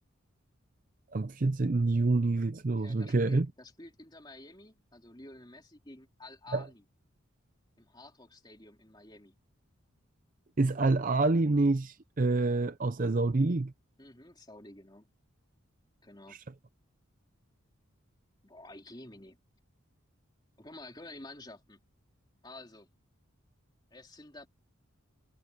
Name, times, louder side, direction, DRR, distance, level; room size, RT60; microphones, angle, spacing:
voice 1, 1.1-3.5 6.5-6.6 10.6-13.7, right 3 dB, 40° right, 0.5 m, -27 dB
voice 2, 2.8-6.8 7.8-9.3 14.0-15.1 16.0-16.4 18.4-19.4 20.6-21.8 22.4-22.9 23.9-24.5, left 2 dB, 20° left, 3.0 m, -50 dB
head